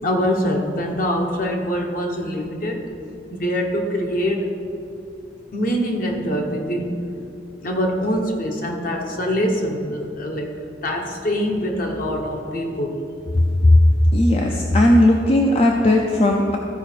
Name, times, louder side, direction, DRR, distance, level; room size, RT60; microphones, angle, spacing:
voice 1, 0.0-2.8 3.3-4.5 5.5-7.1 7.6-10.5 10.8-13.0, equal, 50° left, 1 dB, 1.1 m, -24 dB
voice 2, 14.1-16.6, left 1 dB, 35° left, 1 dB, 0.5 m, -16 dB
13.5 x 5.0 x 4.5 m, 2.6 s
head